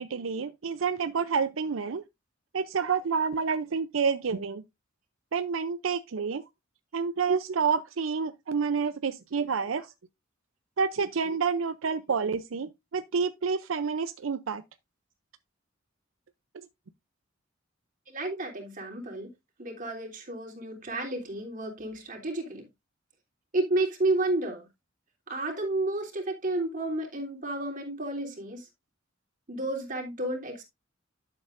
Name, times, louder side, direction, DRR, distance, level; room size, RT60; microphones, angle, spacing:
voice 1, 0.0-2.0 2.5-4.6 5.3-6.4 6.9-9.9 10.8-14.6 16.5-16.7, right 5 dB, 80° right, 0.6 m, -29 dB
voice 2, 18.1-19.3 19.6-22.7 23.5-24.7 25.3-28.7 29.5-30.6, right 2 dB, 45° right, 3.3 m, -31 dB
11.5 x 7.5 x 2.5 m
head